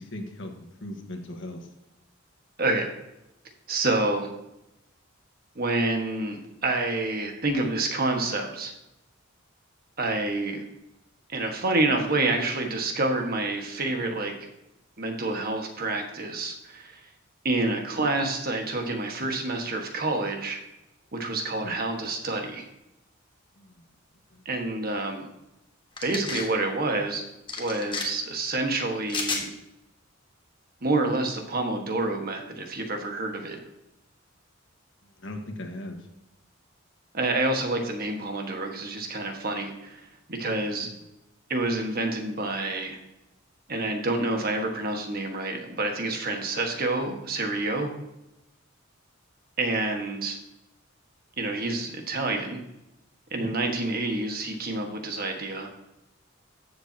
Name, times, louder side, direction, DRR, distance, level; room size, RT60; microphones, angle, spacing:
voice 1, 0.0-1.7 21.6-21.8 23.6-23.8 24.3-24.4 35.2-36.0 40.8-40.9 53.4-53.5, left 1 dB, 60° left, 4 dB, 1.4 m, -38 dB
voice 2, 2.6-2.9 3.7-4.3 5.5-8.7 10.0-10.6 11.3-14.5 15.0-17.1 17.4-20.6 21.1-22.7 24.4-25.2 26.0-27.2 27.6-29.5 30.8-33.6 37.1-40.0 40.3-40.9 41.5-43.0 43.7-47.9 49.6-50.4 51.4-52.6 53.3-55.7, right 2 dB, 45° right, 3 dB, 1.5 m, -28 dB
sound 1, 26.0-26.5 27.5-28.1 29.1-29.4, left 4 dB, 25° left, 1.4 m, -31 dB
13.5 x 7.4 x 2.8 m, 0.89 s
head